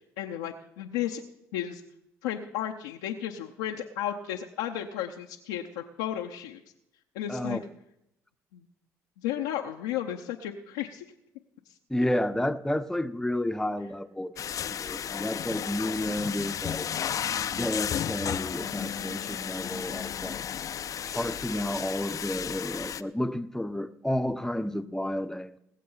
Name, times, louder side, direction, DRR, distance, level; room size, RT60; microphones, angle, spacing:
voice 1, 0.2-1.2 1.5-1.8 2.2-6.6 7.1-7.6 8.5-8.7 9.2-11.1, left 11 dB, 90° left, 0.8 m, -33 dB
voice 2, 7.3-7.6 11.9-14.3 14.7-16.9 17.5-20.4 21.1-25.6, left 1 dB, 5° left, 1.0 m, -31 dB
sound 1, 14.4-23.0, left 9 dB, 55° left, 0.6 m, -33 dB
20.0 x 7.5 x 5.6 m
hypercardioid pair, 60°, 7 cm